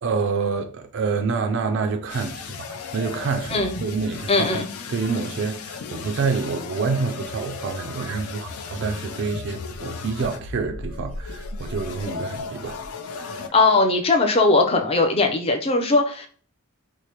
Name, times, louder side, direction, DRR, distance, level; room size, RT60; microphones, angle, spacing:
voice 1, 0.0-4.6 4.9-12.8 13.1-13.4, right 4 dB, 55° right, 0.3 m, -27 dB
sound 1, 2.1-13.5, left 4 dB, 85° left, 0.4 m, -35 dB
voice 2, 4.3-4.7 13.5-16.3, left 3 dB, 25° left, 0.5 m, -19 dB
4.7 x 2.0 x 2.8 m
head